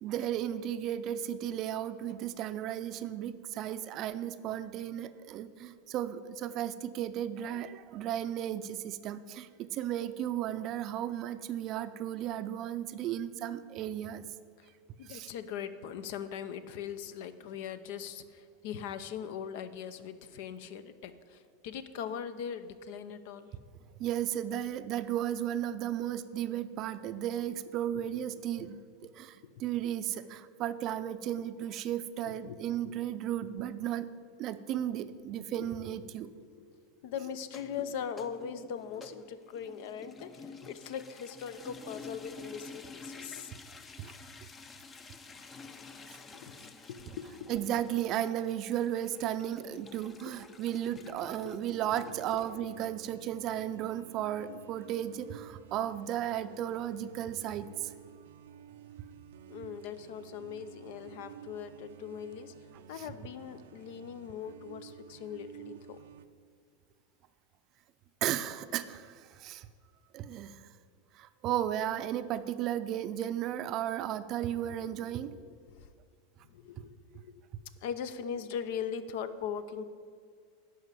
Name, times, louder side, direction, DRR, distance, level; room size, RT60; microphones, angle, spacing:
voice 1, 0.0-14.3 15.0-15.3 24.0-34.1 34.4-36.3 44.0-44.1 47.5-57.9 63.0-63.1 68.2-69.7 70.1-70.7 71.1-75.4, right 11 dB, 40° right, 12 dB, 0.5 m, -34 dB
voice 2, 15.0-23.6 29.4-29.6 32.3-32.6 32.8-32.9 35.5-35.7 36.4-36.7 37.0-43.5 46.3-46.6 46.9-47.6 50.0-50.4 50.8-51.0 51.4-51.6 59.5-62.5 62.9-66.0 74.8-75.3 75.7-75.9 76.5-77.3 77.8-79.8, left 8 dB, 65° left, 13 dB, 0.7 m, -40 dB
sound 1, 37.4-52.5, left 3 dB, 20° left, 0.6 m, -50 dB
sound 2, 51.7-66.3, right 9 dB, 85° right, 0.5 m, -52 dB
11.0 x 5.1 x 8.2 m, 2.1 s
supercardioid pair, 135°, 0 cm